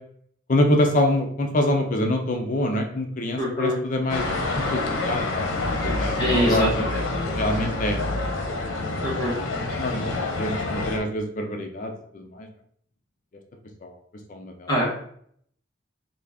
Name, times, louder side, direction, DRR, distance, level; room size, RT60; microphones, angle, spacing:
voice 1, 0.5-5.5 5.8-6.9 7.3-8.1 9.7-12.5 13.8-14.0 14.3-14.7, left 1 dB, 40° left, 3 dB, 0.4 m, -25 dB
voice 2, 3.4-3.8 6.2-6.7 9.0-9.4 14.7-14.9, equal, 20° left, -6 dB, 1.0 m, -23 dB
sound 1, 4.1-11.0, left 2 dB, 90° left, 0.7 m, -27 dB
3.8 x 2.3 x 3.4 m, 0.64 s
head